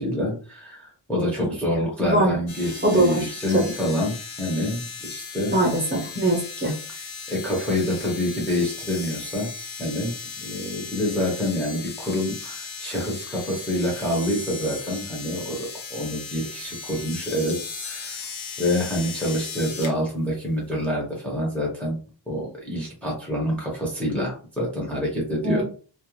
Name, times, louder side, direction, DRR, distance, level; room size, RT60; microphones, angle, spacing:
voice 1, 0.0-5.6 7.3-9.5 9.8-10.2 10.4-17.6 17.8-18.2 18.6-22.0 22.3-25.6, left 1 dB, 5° left, -4 dB, 0.8 m, -27 dB
voice 2, 2.0-2.3 2.8-3.6 5.5-6.7 25.4-25.6, right 1 dB, 25° right, -2 dB, 0.9 m, -22 dB
sound 1, 2.5-19.9 20.8-20.9, left 5 dB, 85° left, 0.8 m, -37 dB
2.4 x 2.0 x 3.0 m, 0.39 s
wide cardioid pair, 135°, 47 cm